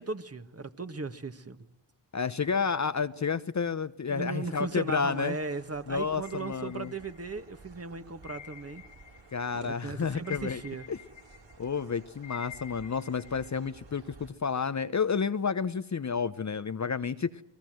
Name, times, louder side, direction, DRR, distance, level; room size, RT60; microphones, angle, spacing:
voice 1, 0.0-1.7 4.1-8.8 9.5-10.9, right 4 dB, 30° right, 1.7 m, -37 dB
voice 2, 2.1-5.4 5.9-6.9 9.3-10.6 10.9-11.0 11.6-17.3, left 5 dB, 35° left, 0.9 m, -30 dB
sound 1, 4.4-14.3, right 4 dB, 60° right, 5.9 m, -55 dB
sound 2, 6.2-7.5 8.2-9.5 9.8-13.6, left 9 dB, 65° left, 1.7 m, -48 dB
28.5 x 19.0 x 7.9 m
supercardioid pair, 45°, 50 cm